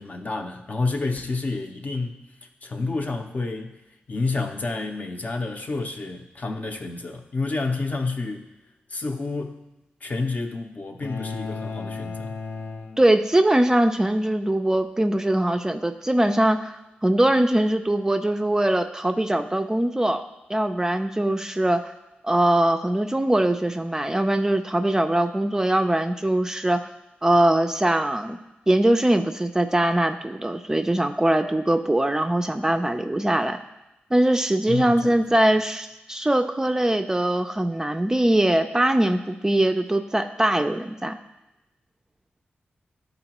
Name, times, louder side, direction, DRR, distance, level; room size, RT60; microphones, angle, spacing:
voice 1, 0.0-2.2 2.6-3.8 4.1-8.5 8.9-9.6 10.0-12.4 34.7-35.3, left 3 dB, 45° left, 5 dB, 0.7 m, -29 dB
sound 1, 11.0-13.6, left 4 dB, 85° left, 0.5 m, -34 dB
voice 2, 13.0-20.2 20.5-21.8 22.2-26.8 27.2-28.4 28.7-33.6 34.1-41.2, right 1 dB, 15° right, 6 dB, 0.4 m, -22 dB
11.0 x 3.9 x 3.0 m, 0.95 s
cardioid pair, 65°, 4 cm